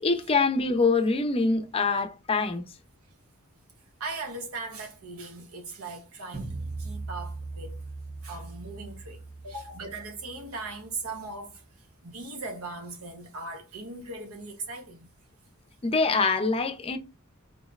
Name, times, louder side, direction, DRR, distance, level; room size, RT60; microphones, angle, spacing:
voice 1, 0.0-2.6 15.8-17.0, left 4 dB, 25° left, 0.5 m, -24 dB
voice 2, 4.0-7.8 8.2-11.6 12.0-15.1, right 3 dB, 80° right, 0.9 m, -39 dB
sound 1, 6.3-11.4, right 3 dB, 35° right, 0.7 m, -40 dB
3.8 x 3.1 x 2.3 m
head